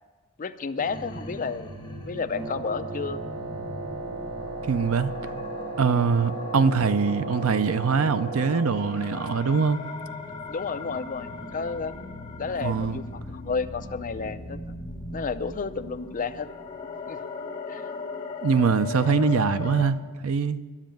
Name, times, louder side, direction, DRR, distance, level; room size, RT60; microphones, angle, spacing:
voice 1, 0.4-1.7 2.1-3.2 10.5-11.9 12.4-14.6 15.1-16.5 17.1-17.2 17.7-17.9, left 5 dB, 40° left, 0.5 m, -31 dB
sound 1, 0.8-19.9, left 2 dB, 20° left, 1.4 m, -38 dB
Wind instrument woodwind instrument, 2.3-9.0, right 3 dB, 85° right, 1.3 m, -36 dB
voice 2, 4.7-5.1 5.8-9.8 12.6-13.0 18.4-20.0 20.2-20.6, right 5 dB, 65° right, 0.5 m, -23 dB
11.0 x 7.4 x 9.0 m
head